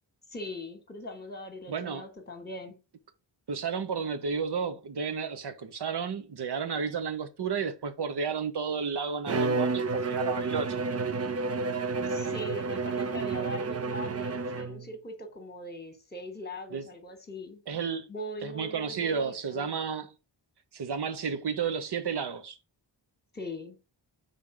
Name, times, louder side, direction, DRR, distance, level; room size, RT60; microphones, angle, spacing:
voice 1, 0.3-2.8 12.1-17.6 18.1-19.7 23.3-23.8, left 1 dB, 20° left, 1.6 m, -41 dB
voice 2, 1.7-2.1 3.5-10.8 16.7-16.8 17.7-18.1 18.4-20.1 20.7-22.6, right 6 dB, 65° right, 1.1 m, -32 dB
Bowed string instrument, 9.3-14.9, right 4 dB, 35° right, 0.5 m, -30 dB
5.5 x 3.7 x 4.9 m
wide cardioid pair, 100°, 44 cm